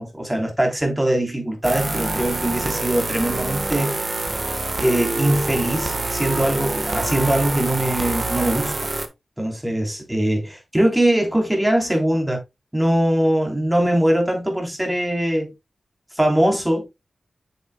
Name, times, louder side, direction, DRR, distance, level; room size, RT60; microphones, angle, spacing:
voice 1, 0.0-4.0 4.8-8.9 9.4-12.4 12.7-15.5 16.1-16.9, right 1 dB, 10° right, 3.3 m, -21 dB
sound 1, 1.6-9.1, right 2 dB, 35° right, 1.2 m, -26 dB
8.1 x 7.0 x 2.2 m
wide cardioid pair, 80°, 0 cm